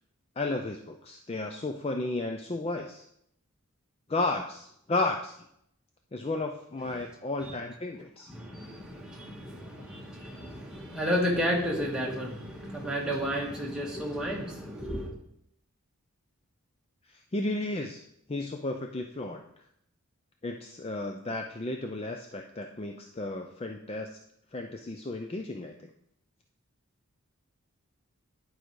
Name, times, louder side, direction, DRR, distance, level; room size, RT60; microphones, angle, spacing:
voice 1, 0.4-3.0 4.1-5.4 6.1-8.3 17.3-18.0 18.3-19.4 20.4-24.1 24.5-25.8, left 2 dB, 25° left, 4 dB, 0.4 m, -33 dB
voice 2, 8.3-15.1, equal, 5° right, -3 dB, 1.6 m, -32 dB
10.5 x 4.9 x 4.6 m, 0.74 s
head